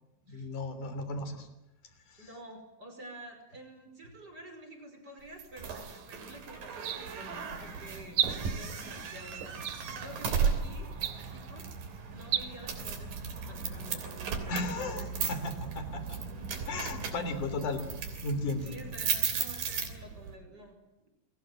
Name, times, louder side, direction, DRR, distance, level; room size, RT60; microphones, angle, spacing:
voice 1, 0.3-1.5 2.1-2.2 14.5-16.2 16.7-17.8 18.2-18.7, left 2 dB, 65° left, 10 dB, 4.9 m, -35 dB
voice 2, 2.2-9.6 10.0-11.7 12.1-15.1 15.5-15.6 16.1-16.4 18.6-20.8, right 1 dB, 30° right, 5 dB, 5.7 m, -49 dB
sound 1, 5.4-20.3, right 6 dB, 85° right, 4.9 m, -36 dB
sound 2, 5.8-6.1 6.7-7.3 8.1-8.7 9.6-10.2 10.9-11.5 12.2-12.5, right 10 dB, 65° right, 2.4 m, -34 dB
29.0 x 22.0 x 7.7 m, 0.93 s
omnidirectional pair, 3.9 m